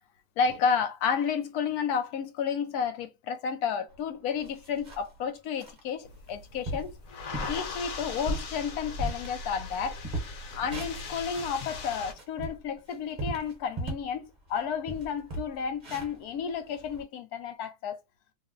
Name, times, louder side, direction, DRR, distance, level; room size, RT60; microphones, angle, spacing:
voice 1, 0.4-6.9 7.5-10.0 10.6-18.0, left 6 dB, 85° left, 1.2 m, -31 dB
sound 1, 3.9-4.0 4.4-5.2 5.6-5.8 6.3-6.4 6.6-6.9 7.3-7.6 8.0-9.7 10.0-11.6 12.0-14.1 14.5-14.6 14.9-17.0, right 1 dB, 35° right, 1.0 m, -37 dB
sound 2, 6.0-12.1, left 4 dB, 65° left, 1.2 m, -40 dB
2.8 x 2.1 x 3.7 m
omnidirectional pair, 1.6 m